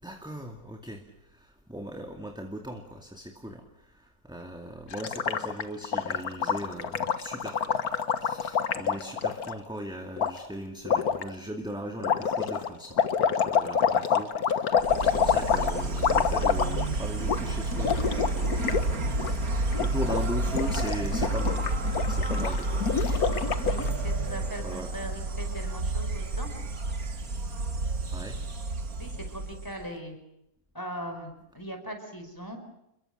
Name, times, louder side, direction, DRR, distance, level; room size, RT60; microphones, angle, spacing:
voice 1, 0.0-7.8 8.2-23.6 23.9-25.0 28.1-28.4, equal, 5° right, 4 dB, 2.2 m, -39 dB
Gurgling, 4.9-9.5 10.2-10.3 10.8-11.2 12.0-16.9 17.2-17.4 17.7-18.8 19.1-19.3 19.7-20.2 20.5-23.9, left 7 dB, 90° left, 1.8 m, -27 dB
Insect, 14.8-29.9, right 2 dB, 75° right, 2.9 m, -30 dB
voice 2, 23.6-26.5 29.0-30.2 30.7-32.6, equal, 15° left, 5 dB, 5.2 m, -40 dB
29.5 x 22.5 x 6.6 m, 0.84 s
omnidirectional pair, 1.5 m